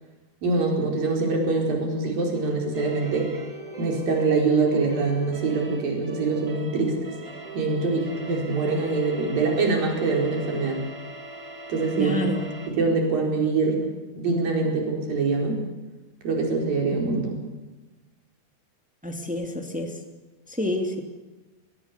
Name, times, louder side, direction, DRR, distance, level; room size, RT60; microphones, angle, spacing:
voice 1, 0.4-3.3 3.8-7.0 7.5-10.8 11.7-12.2 12.7-13.8 14.1-15.6 16.2-17.4, right 3 dB, 65° right, 1 dB, 6.4 m, -24 dB
sound 1, 2.7-12.7, right 2 dB, 25° right, 2.6 m, -40 dB
voice 2, 11.9-12.5 16.9-17.2 19.0-19.9 20.5-21.0, equal, 5° right, 4 dB, 2.0 m, -29 dB
23.0 x 21.5 x 7.0 m, 1.1 s
omnidirectional pair, 4.4 m